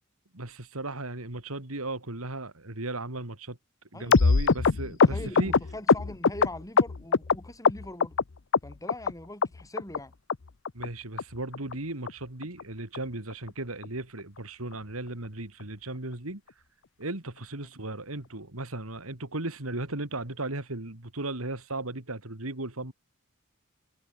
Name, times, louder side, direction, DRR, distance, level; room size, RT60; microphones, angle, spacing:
voice 1, 0.3-3.6 3.9-5.5 10.7-16.4 17.0-22.9, right 2 dB, 85° right, 3.3 m, -36 dB
voice 2, 3.9-4.2 4.9-8.2 8.6-10.1, left 1 dB, 15° left, 7.0 m, -42 dB
sound 1, 4.1-7.4 7.6-8.2 8.5-9.1 9.4-9.5 9.8-10.0 10.3-10.4 10.7-10.9 11.2-11.3 11.5-11.7 12.1-12.2 12.4-12.6 12.9-13.0 13.3-13.5 13.8-13.9, left 4 dB, 60° left, 0.7 m, -22 dB
head